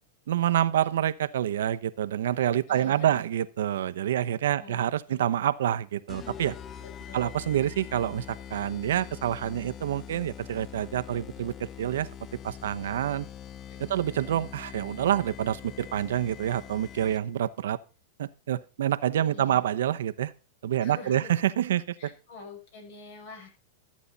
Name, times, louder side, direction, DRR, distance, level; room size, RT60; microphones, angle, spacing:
voice 1, 0.3-6.6 7.1-12.1 12.4-13.3 13.8-17.8 18.2-20.3 20.6-22.1, right 11 dB, 80° right, 12 dB, 0.8 m, -27 dB
voice 2, 2.7-3.2 4.6-5.4 6.8-7.3 13.9-14.0 19.2-19.6 20.8-21.3 22.0-23.5, left 5 dB, 65° left, 2 dB, 6.5 m, -46 dB
sound 1, 6.1-17.5, left 9 dB, 25° left, 0.6 m, -44 dB
13.5 x 8.6 x 4.0 m, 0.34 s
supercardioid pair, 135°, 0 cm